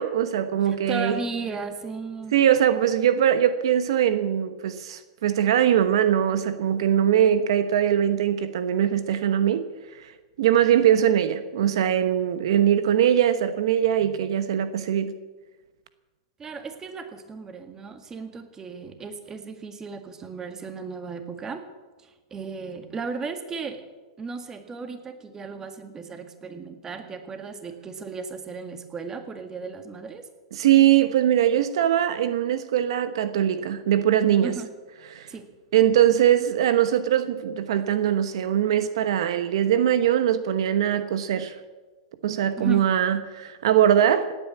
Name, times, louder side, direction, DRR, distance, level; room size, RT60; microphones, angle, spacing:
voice 1, 0.0-1.2 2.3-9.7 10.0-10.1 10.4-15.2 30.5-34.6 35.1-35.3 35.7-41.5 42.2-44.4, right 10 dB, 75° right, 1.0 m, -21 dB
voice 2, 0.6-2.4 16.4-21.6 22.0-23.8 24.2-30.3 34.4-34.7 35.3-35.5 42.6-42.9, right 4 dB, 20° right, 1.8 m, -35 dB
17.5 x 9.1 x 8.6 m
hypercardioid pair, 125°, 3 cm